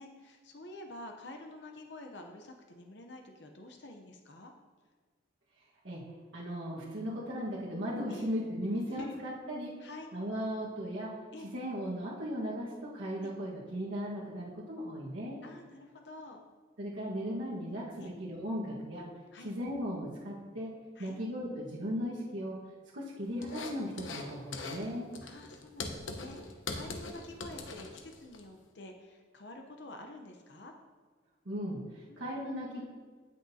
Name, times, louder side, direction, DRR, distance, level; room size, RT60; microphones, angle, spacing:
voice 1, 0.0-4.5 8.1-8.3 8.9-9.2 9.8-10.1 11.3-11.5 13.2-13.3 15.4-16.4 18.0-18.1 19.3-19.5 20.9-21.2 23.2-23.4 25.2-30.7 32.1-32.2, left 2 dB, 60° left, 3 dB, 0.7 m, -48 dB
voice 2, 6.3-11.1 11.5-15.4 16.8-19.1 19.4-20.7 21.0-22.6 22.9-25.1 31.4-32.8, equal, 75° right, -6 dB, 1.5 m, -37 dB
sound 1, 23.4-24.3 24.5-24.8 25.1-28.4, left 3 dB, 85° left, 1.0 m, -41 dB
16.5 x 6.3 x 2.8 m, 1.5 s
head